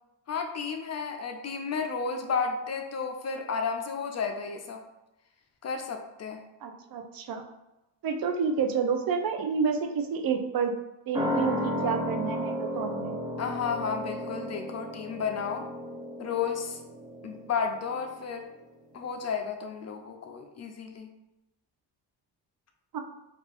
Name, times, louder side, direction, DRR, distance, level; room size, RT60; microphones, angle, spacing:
voice 1, 0.3-4.8 5.6-6.4 13.4-15.6 16.2-16.8 17.2-18.4 18.9-21.1, left 5 dB, 40° left, 4 dB, 0.4 m, -32 dB
voice 2, 6.6-7.4 8.0-10.7 11.1-13.2 22.9-23.0, right 6 dB, 55° right, 5 dB, 0.5 m, -29 dB
sound 1, 11.1-18.2 18.5-18.6, equal, 10° right, 0.5 m, -34 dB
4.3 x 2.5 x 3.4 m, 0.98 s
cardioid pair, 120°, 42 cm